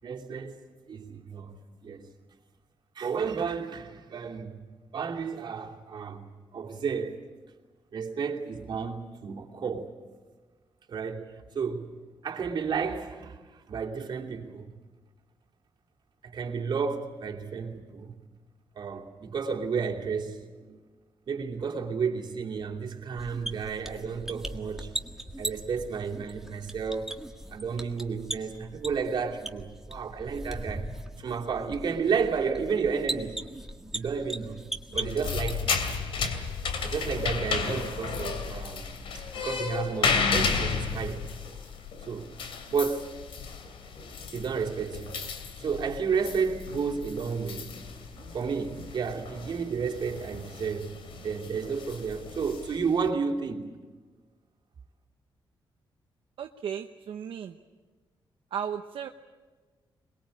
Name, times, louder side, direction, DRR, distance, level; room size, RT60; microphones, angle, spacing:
voice 1, 0.0-0.6 0.9-1.5 1.8-2.1 2.9-4.6 4.9-7.2 7.9-9.9 10.9-11.9 12.2-14.7 16.2-18.2 18.7-20.8 21.3-24.9 25.4-27.1 27.5-33.4 33.9-34.6 34.9-35.8 36.8-38.8 39.1-41.3 42.0-42.3 42.7-43.1 44.3-45.2 45.6-53.7, right 5 dB, 55° right, 2.9 m, -32 dB
sound 1, 23.2-35.9, right 1 dB, 5° right, 1.7 m, -39 dB
sound 2, 34.9-53.1, left 5 dB, 80° left, 2.7 m, -33 dB
voice 2, 56.4-57.6 58.5-59.1, right 8 dB, 75° right, 0.9 m, -35 dB
22.5 x 22.0 x 8.6 m
cardioid pair, 120°, 9 cm